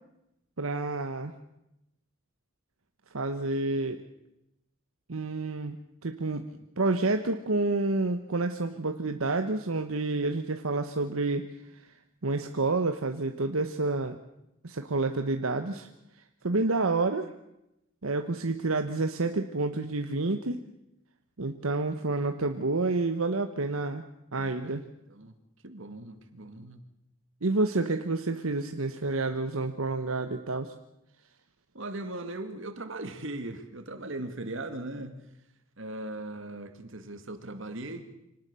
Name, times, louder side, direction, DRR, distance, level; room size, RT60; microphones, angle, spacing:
voice 1, 0.6-1.3 3.1-4.0 5.1-5.8 6.0-6.5 6.8-11.5 11.8-11.9 12.2-14.2 14.6-15.9 16.4-17.3 18.0-20.6 21.4-24.0 24.3-24.8 27.4-30.7, right 3 dB, 85° right, 7 dB, 1.2 m, -29 dB
voice 2, 24.4-24.7 25.1-25.4 25.6-26.8 31.7-35.2 35.8-38.1, right 2 dB, 65° right, 9 dB, 2.3 m, -39 dB
25.0 x 18.5 x 6.9 m, 0.85 s
head